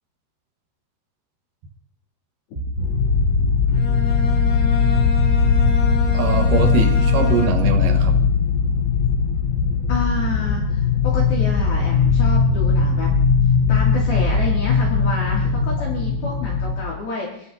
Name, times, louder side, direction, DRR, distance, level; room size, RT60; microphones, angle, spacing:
sound 1, 2.5-3.8 5.0-8.7 9.6-10.8 11.6-15.5, right 3 dB, 15° right, 3.1 m, -30 dB
sound 2, 2.8-16.8, left 6 dB, 80° left, 4.8 m, -19 dB
Bowed string instrument, 3.7-7.9, left 2 dB, 30° left, 3.1 m, -30 dB
voice 1, 6.1-8.2, right 4 dB, 60° right, 3 dB, 2.4 m, -22 dB
voice 2, 9.9-13.1 13.7-17.5, left 3 dB, 55° left, -4 dB, 4.2 m, -29 dB
27.5 x 13.5 x 2.8 m, 0.71 s
omnidirectional pair, 5.7 m